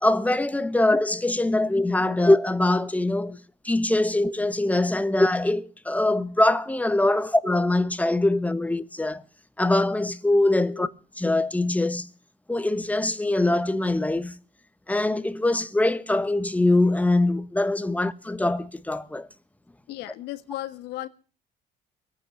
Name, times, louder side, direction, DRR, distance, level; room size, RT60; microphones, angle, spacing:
voice 1, 0.0-3.4 3.6-9.2 9.6-10.9 11.2-12.1 12.5-14.4 14.9-19.3, left 2 dB, 10° left, 1.1 m, -23 dB
voice 2, 19.9-21.1, left 15 dB, 90° left, 1.4 m, -36 dB
21.5 x 9.2 x 7.0 m
cardioid pair, 110°, 17 cm